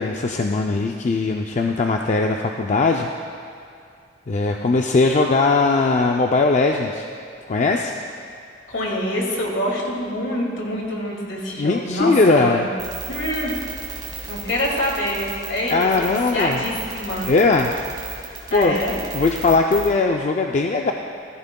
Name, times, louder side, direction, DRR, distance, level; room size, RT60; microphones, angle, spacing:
voice 1, 0.0-3.1 4.3-7.0 7.5-7.9 11.6-12.6 15.7-16.6 17.3-17.7 18.5-18.8 19.1-20.9, left 3 dB, 40° left, 3 dB, 0.4 m, -19 dB
voice 2, 8.7-12.7 13.1-13.5 14.3-17.3 18.5-19.0, left 1 dB, 70° left, -2 dB, 2.3 m, -25 dB
sound 1, 12.8-19.9, right 5 dB, 25° right, 2.3 m, -33 dB
15.0 x 14.5 x 2.3 m, 2.4 s
head